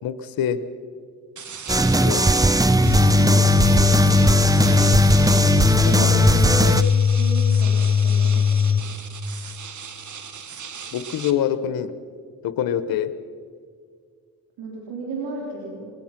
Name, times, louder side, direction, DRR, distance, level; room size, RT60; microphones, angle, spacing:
voice 1, 0.0-0.6 2.0-2.3 5.8-6.1 10.9-11.9 12.4-13.1, left 9 dB, 85° left, 13 dB, 0.9 m, -25 dB
sound 1, 1.4-11.3, right 6 dB, 60° right, 1.7 m, -38 dB
sound 2, 1.7-6.8, right 2 dB, 10° right, 0.7 m, -18 dB
sound 3, 2.8-8.8, left 7 dB, 25° left, 6.6 m, -19 dB
voice 2, 5.9-6.8 7.2-8.4 8.8-8.9 14.6-15.9, right 2 dB, 85° right, -2 dB, 3.5 m, -33 dB
22.5 x 19.5 x 5.9 m, 2.1 s
supercardioid pair, 55°, 34 cm